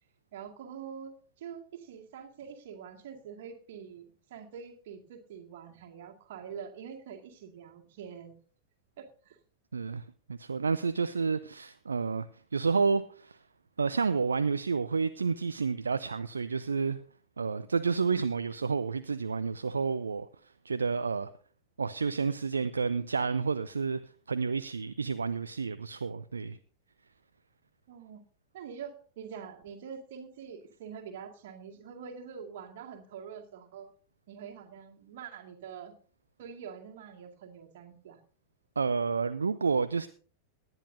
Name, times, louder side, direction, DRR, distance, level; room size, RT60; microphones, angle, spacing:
voice 1, 0.3-4.0 4.3-8.3 9.0-9.4 27.9-28.2 28.5-33.9 34.3-35.9 36.4-38.2, right 7 dB, 55° right, 2.1 m, -45 dB
voice 2, 9.7-10.0 10.3-12.3 12.5-13.4 13.8-17.0 17.4-20.3 20.6-21.3 21.8-24.0 24.3-26.6 38.8-40.1, right 5 dB, 75° right, 0.5 m, -30 dB
18.5 x 10.5 x 2.7 m
figure-of-eight pair, 90°, 0 cm